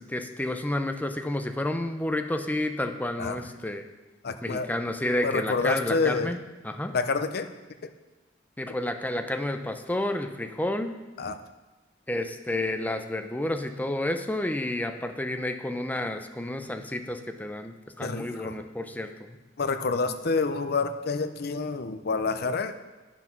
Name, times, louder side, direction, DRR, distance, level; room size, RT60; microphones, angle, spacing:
voice 1, 0.0-3.8 4.4-6.9 8.6-11.0 12.1-19.4, left 1 dB, 10° left, 6 dB, 0.6 m, -30 dB
voice 2, 3.2-3.5 4.2-4.7 5.2-6.4 6.9-7.5 7.8-7.9 11.2-11.4 18.0-18.6 19.6-22.8, left 4 dB, 55° left, 9 dB, 0.7 m, -28 dB
9.4 x 6.0 x 5.9 m, 1.2 s
head